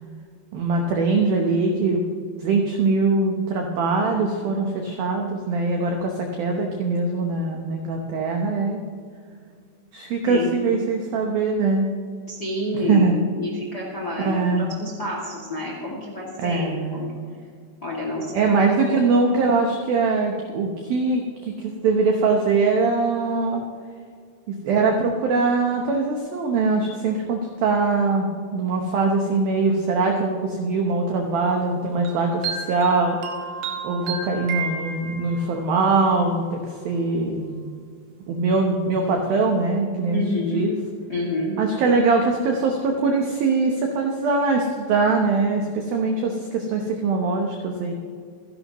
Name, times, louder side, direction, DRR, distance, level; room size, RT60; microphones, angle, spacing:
voice 1, 0.5-2.0 2.4-8.8 9.9-11.9 12.9-13.2 14.2-14.7 16.4-17.1 18.3-23.6 24.5-33.5 33.8-37.6 38.3-40.8 41.6-47.9, right 3 dB, 85° right, 2 dB, 2.0 m, -22 dB
voice 2, 12.3-13.1 13.3-17.1 17.8-18.6 18.8-19.1 40.1-40.6 41.1-41.6, left 1 dB, 40° left, -2 dB, 1.4 m, -29 dB
sound 1, 32.0-35.5, right 5 dB, 65° right, 3.4 m, -32 dB
27.5 x 11.0 x 3.1 m, 2.1 s
omnidirectional pair, 5.9 m